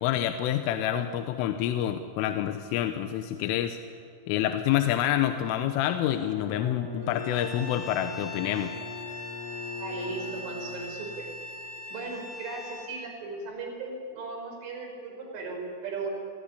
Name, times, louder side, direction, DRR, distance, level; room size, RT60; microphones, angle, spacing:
voice 1, 0.0-3.8 4.3-8.7, left 11 dB, 85° left, 8 dB, 3.5 m, -27 dB
Bowed string instrument, 6.0-11.5, left 3 dB, 70° left, 9.8 m, -41 dB
Bowed string instrument 2, 7.0-12.9, left 3 dB, 40° left, 8.5 m, -41 dB
voice 2, 9.8-11.3 11.9-16.1, right 4 dB, 70° right, 2 dB, 7.8 m, -37 dB
28.0 x 21.0 x 10.0 m, 2.4 s
omnidirectional pair, 5.7 m